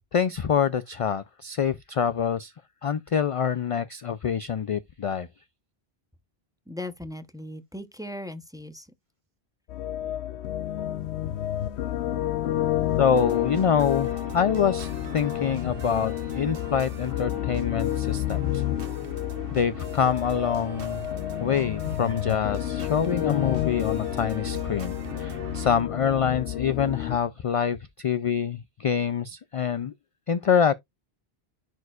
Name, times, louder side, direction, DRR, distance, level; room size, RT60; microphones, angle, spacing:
voice 1, 0.1-2.5 2.8-5.3 13.0-18.6 19.5-21.1 21.4-29.9 30.3-30.7, left 7 dB, 55° left, 0.4 m, -26 dB
voice 2, 6.7-8.9, left 1 dB, 5° right, 0.7 m, -38 dB
sound 1, 9.7-27.2, left 13 dB, 90° left, 0.9 m, -30 dB
sound 2, 13.1-25.8, right 4 dB, 60° right, 1.2 m, -42 dB
10.5 x 4.6 x 2.4 m
omnidirectional pair, 1.1 m